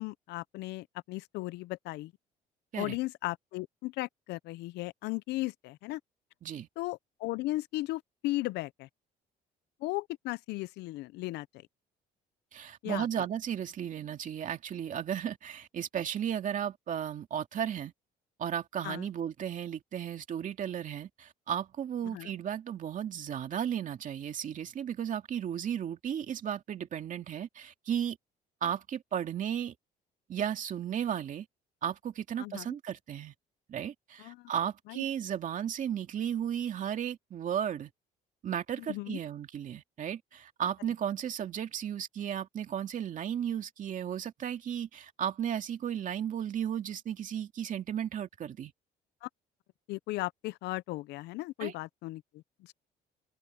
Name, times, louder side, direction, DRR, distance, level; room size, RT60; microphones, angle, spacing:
voice 1, 0.0-2.1 2.8-6.0 6.8-8.9 9.8-11.5 12.8-13.1 18.8-19.1 22.0-22.3 32.4-32.8 34.2-34.5 34.9-35.0 38.8-39.2 49.2-49.3 49.9-52.7, left 19 dB, 80° left, 0.5 m, -36 dB
voice 2, 12.5-17.9 18.4-28.2 28.6-29.7 30.3-31.5 31.8-33.3 33.7-37.9 38.4-48.7 51.6-51.7, right 9 dB, 50° right, 2.4 m, -34 dB
cardioid pair, 110°, 17 cm